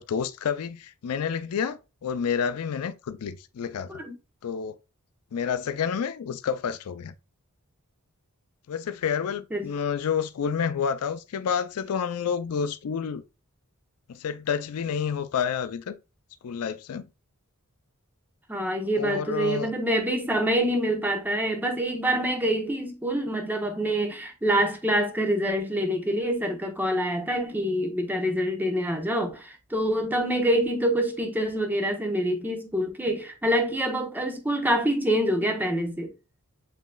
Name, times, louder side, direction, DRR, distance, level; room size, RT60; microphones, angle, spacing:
voice 1, 0.0-4.0 4.4-4.8 5.3-7.1 8.7-13.2 14.1-15.9 16.4-17.0 19.0-19.7, left 7 dB, 75° left, 0.4 m, -29 dB
voice 2, 18.5-36.1, right 1 dB, 10° right, 1.0 m, -26 dB
7.6 x 3.0 x 2.2 m
head